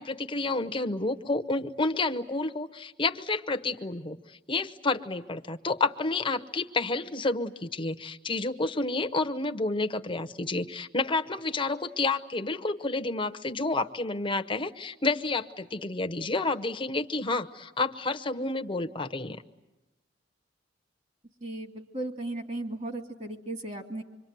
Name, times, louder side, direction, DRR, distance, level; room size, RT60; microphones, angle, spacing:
voice 1, 0.0-4.2 4.5-19.4, left 3 dB, 30° left, 7 dB, 0.9 m, -30 dB
voice 2, 21.4-24.0, right 2 dB, 40° right, 5 dB, 2.3 m, -36 dB
26.5 x 24.0 x 9.3 m, 1.1 s
head